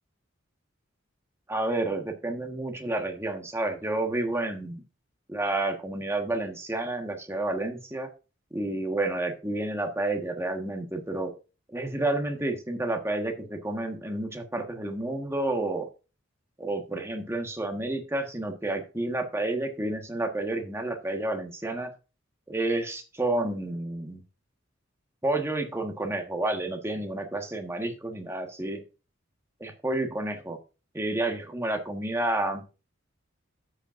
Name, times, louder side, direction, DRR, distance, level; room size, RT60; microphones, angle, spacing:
voice 1, 1.5-4.8 5.3-8.1 8.5-11.3 11.7-15.9 16.6-21.9 22.5-24.2 25.2-28.8 29.6-30.6 30.9-32.6, right 2 dB, 15° right, 4 dB, 1.4 m, -30 dB
13.0 x 7.7 x 2.5 m, 0.31 s
head